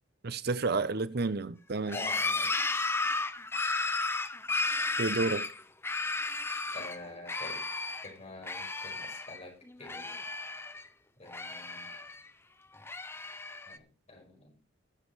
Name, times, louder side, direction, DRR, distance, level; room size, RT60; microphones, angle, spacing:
voice 1, 0.2-2.0 5.0-5.5, right 3 dB, 60° right, 0.8 m, -30 dB
voice 2, 1.9-2.5 6.7-7.6 8.0-10.1 11.2-11.9 13.7-14.6, left 2 dB, 35° left, 5.2 m, -46 dB
sound 1, 1.9-7.0 7.3-8.1 8.4-9.4 9.7-10.9 11.3-12.3 12.8-13.8, left 3 dB, 15° left, 0.6 m, -33 dB
20.0 x 7.4 x 3.2 m
head